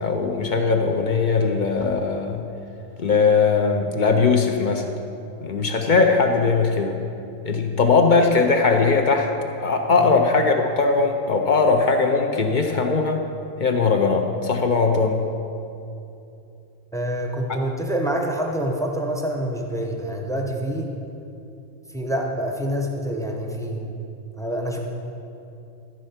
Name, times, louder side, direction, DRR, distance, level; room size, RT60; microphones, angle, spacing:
voice 1, 0.0-2.4 3.0-4.9 5.4-7.0 7.4-9.3 9.6-13.2 13.6-15.3, left 4 dB, 50° left, 4 dB, 0.6 m, -20 dB
voice 2, 16.9-20.9 21.9-23.8 24.4-24.8, right 1 dB, 5° left, 1 dB, 0.5 m, -26 dB
13.5 x 4.4 x 5.7 m, 2.7 s
omnidirectional pair, 1.4 m